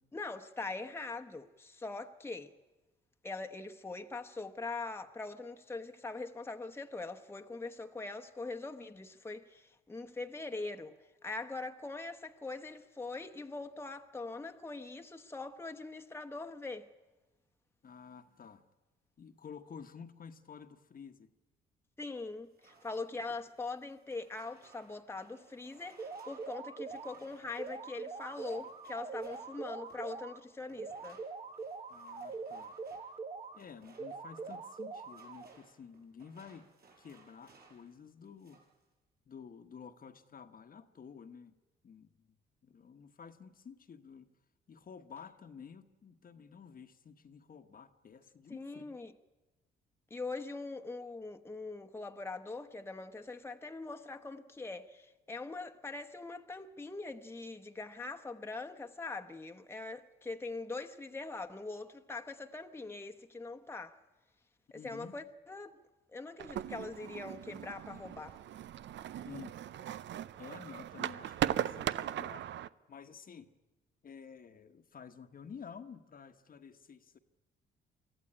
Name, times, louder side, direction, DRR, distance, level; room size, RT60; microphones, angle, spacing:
voice 1, 0.1-2.5 3.2-11.0 11.2-16.9 22.0-31.2 48.5-49.1 50.1-64.0 64.7-65.8 66.1-68.4, left 3 dB, 10° left, 1.1 m, -42 dB
voice 2, 17.8-18.7 19.2-21.3 31.9-32.8 33.5-36.7 37.0-38.6 39.3-41.5 41.8-42.4 42.6-44.3 44.7-49.0 64.7-65.2 69.2-69.7 70.4-72.5 72.9-73.5 74.0-77.2, left 6 dB, 45° left, 1.2 m, -51 dB
sound 1, 22.4-30.1 30.7-37.9 38.2-38.8, right 4 dB, 50° right, 5.7 m, -63 dB
sound 2, 26.0-27.2 27.6-30.4 30.8-33.6 34.0-35.6, right 4 dB, 30° right, 1.0 m, -43 dB
sound 3, 66.4-72.7, right 11 dB, 65° right, 0.6 m, -38 dB
24.0 x 14.5 x 9.9 m
cardioid pair, 90°, 20 cm